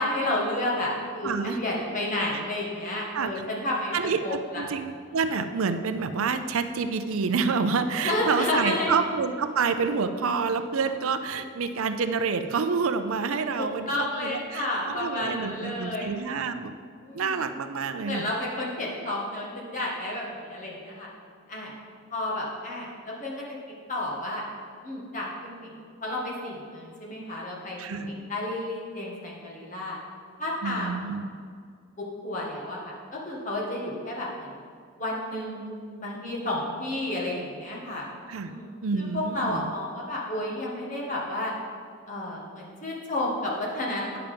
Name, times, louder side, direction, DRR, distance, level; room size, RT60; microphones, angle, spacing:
voice 1, 0.0-3.9 4.2-4.6 8.0-9.0 13.5-16.1 17.0-17.4 18.0-21.1 21.5-21.7 22.1-23.4 23.9-24.4 24.8-25.7 26.0-30.0 30.4-31.0 32.0-34.6 35.0-35.7 36.0-38.1 38.5-38.7 39.0-41.5 42.1-44.2, left 1 dB, 35° left, -4 dB, 1.7 m, -31 dB
voice 2, 1.2-1.6 3.1-3.3 3.9-16.7 17.1-18.3 27.8-28.1 30.6-31.3 38.3-38.5 38.8-39.6, right 5 dB, 80° right, 9 dB, 0.5 m, -28 dB
9.0 x 5.8 x 5.1 m, 2.1 s
head